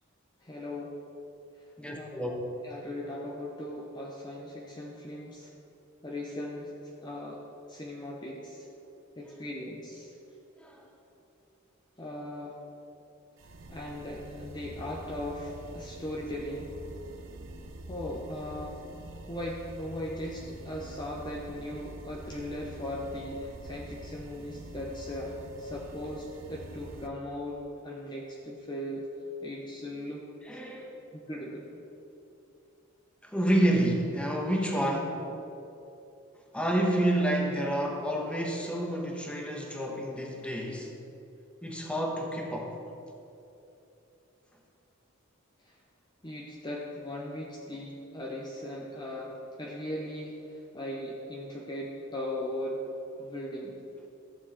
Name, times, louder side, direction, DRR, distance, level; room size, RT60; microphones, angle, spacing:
voice 1, 0.4-0.9 2.0-2.1 2.6-5.5 6.0-7.4 7.7-8.7 9.2-10.1 12.0-12.6 13.7-16.7 17.9-18.8 19.3-25.3 25.6-29.1 29.4-30.3 31.3-31.7 45.6-45.7 46.2-52.8 53.2-53.8, left 1 dB, 20° left, -2 dB, 0.9 m, -38 dB
voice 2, 1.8-2.3 10.6-10.8 30.4-30.9 33.2-35.3 36.5-40.9 41.6-42.8, right 1 dB, 5° left, 0 dB, 1.2 m, -29 dB
sound 1, 13.4-27.1, right 1 dB, 65° right, 0.8 m, -46 dB
14.5 x 7.2 x 4.3 m, 2.8 s
head